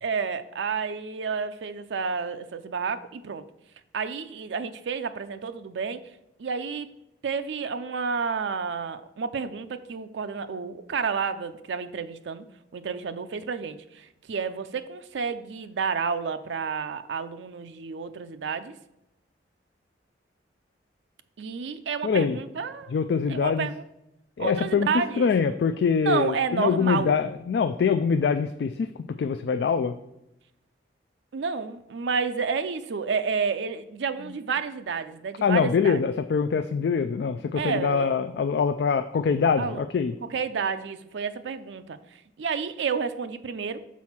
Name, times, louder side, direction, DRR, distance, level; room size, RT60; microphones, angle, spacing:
voice 1, 0.0-3.4 3.9-6.0 6.4-6.9 7.2-12.4 12.7-18.7 21.4-22.9 23.3-23.8 24.4-25.3 26.0-27.2 31.3-36.0 37.6-38.1 39.6-39.8 40.2-43.8, right 5 dB, 80° right, 0.4 m, -30 dB
voice 2, 22.0-22.4 22.9-23.7 24.4-28.9 29.2-30.0 35.4-40.1, left 6 dB, 65° left, 0.3 m, -24 dB
6.2 x 4.2 x 5.7 m
head